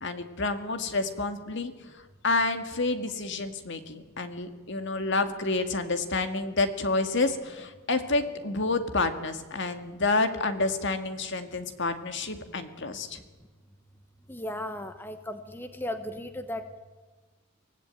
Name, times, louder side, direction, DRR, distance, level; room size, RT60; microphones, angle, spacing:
voice 1, 0.0-1.7 2.2-13.2, left 3 dB, 55° left, 8 dB, 2.0 m, -29 dB
voice 2, 14.3-16.8, left 1 dB, 10° left, 8 dB, 1.0 m, -36 dB
24.0 x 17.0 x 9.0 m, 1.3 s
head